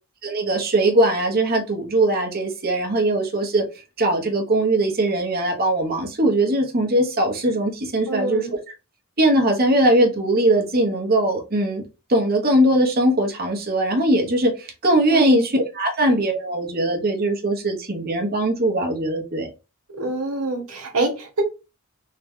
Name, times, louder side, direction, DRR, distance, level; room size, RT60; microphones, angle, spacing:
voice 1, 0.2-3.6 4.0-8.5 9.2-11.8 12.1-19.5, right 1 dB, 45° right, 1.0 m, -20 dB
voice 2, 8.1-8.5 15.1-15.4 19.9-21.4, right 2 dB, 80° right, 1.3 m, -26 dB
3.8 x 2.3 x 3.6 m
head